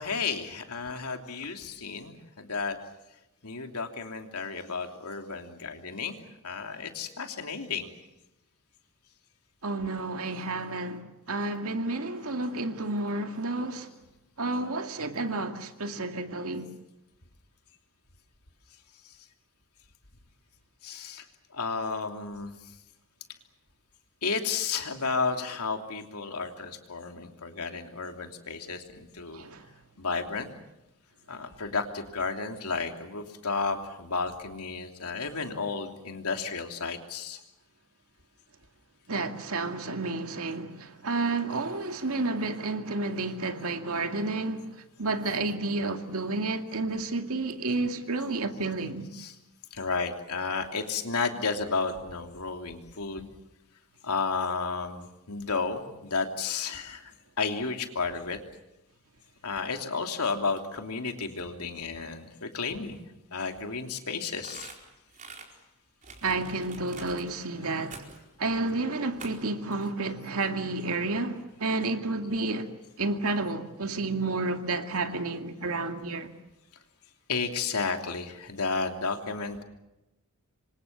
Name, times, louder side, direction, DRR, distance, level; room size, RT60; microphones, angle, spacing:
voice 1, 0.0-2.8 3.4-6.2 6.4-7.9 20.8-21.2 21.5-22.6 24.2-29.5 30.0-30.5 31.3-37.4 49.1-49.3 49.7-53.3 54.0-57.1 57.4-58.4 59.4-63.0 63.3-64.8 77.3-79.6, left 4 dB, 85° left, 3.1 m, -32 dB
voice 2, 9.6-13.9 14.4-16.7 29.3-29.7 39.1-44.7 45.0-49.1 66.2-68.1 68.4-72.7 73.0-76.3, right 3 dB, 70° right, 2.2 m, -31 dB
sound 1, 64.4-65.5 66.0-67.2 67.9-68.3 69.2-69.5 69.8-69.9, right 4 dB, 35° right, 4.5 m, -46 dB
27.5 x 25.0 x 7.3 m
head